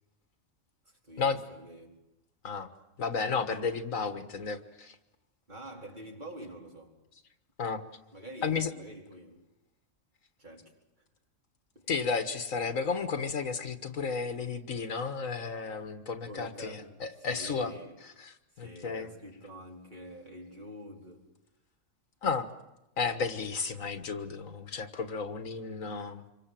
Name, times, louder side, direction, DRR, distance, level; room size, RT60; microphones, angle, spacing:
voice 1, 0.8-2.0 5.5-7.0 8.1-9.5 10.4-11.0 11.7-11.9 14.8-14.9 16.3-18.0 18.5-21.3, right 1 dB, 35° right, 4.5 m, -47 dB
voice 2, 3.0-5.0 7.6-7.8 8.4-8.7 11.9-17.7 18.2-19.1 22.2-22.5 23.0-26.3, left 5 dB, 90° left, 1.9 m, -33 dB
27.0 x 24.5 x 7.6 m
omnidirectional pair, 1.4 m